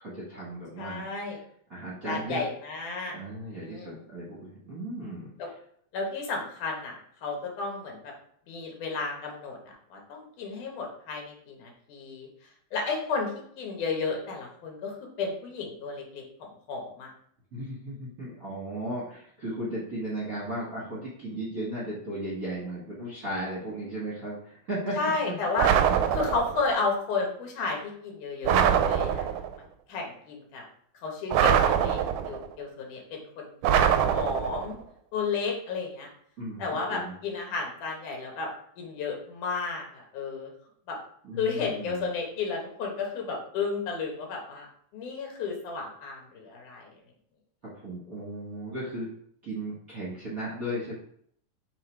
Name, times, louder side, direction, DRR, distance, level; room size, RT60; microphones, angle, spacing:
voice 1, 0.0-1.0 1.7-2.5 3.1-5.3 17.5-25.0 25.2-25.3 36.4-37.1 41.2-42.1 47.8-49.1 49.4-50.9, right 1 dB, 40° right, -8 dB, 1.3 m, -35 dB
voice 2, 0.8-1.4 2.1-3.2 3.5-4.0 5.4-5.5 5.9-7.0 7.2-8.1 8.5-12.3 12.7-17.1 25.0-25.7 26.1-29.3 29.9-30.6 31.0-32.0 32.3-33.8 34.1-34.7 35.1-36.1 36.6-38.5 38.8-40.5 40.9-41.0 41.4-44.7 44.9-47.0, left 4 dB, 70° left, 0 dB, 2.7 m, -32 dB
sound 1, 25.6-26.7 28.4-29.6 31.3-32.5 33.6-34.8, right 9 dB, 80° right, 1.9 m, -23 dB
6.9 x 3.4 x 4.6 m, 0.64 s
omnidirectional pair, 3.8 m